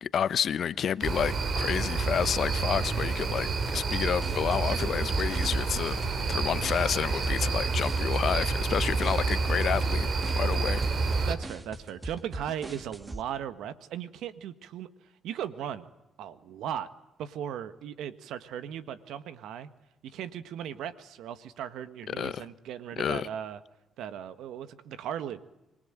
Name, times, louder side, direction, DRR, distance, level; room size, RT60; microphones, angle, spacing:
voice 1, 0.0-10.8 22.1-22.4 23.0-23.3, left 8 dB, 65° left, 0.9 m, -30 dB
sound 1, 1.0-11.4, right 4 dB, 55° right, 3.3 m, -29 dB
sound 2, 3.6-13.2, right 2 dB, 25° right, 2.1 m, -41 dB
voice 2, 4.7-5.1 11.2-14.9 15.2-15.9 16.2-16.9 17.2-19.7 20.0-23.6 24.0-25.4, right 9 dB, 80° right, 1.5 m, -37 dB
26.0 x 20.0 x 9.0 m
supercardioid pair, 55°, 0 cm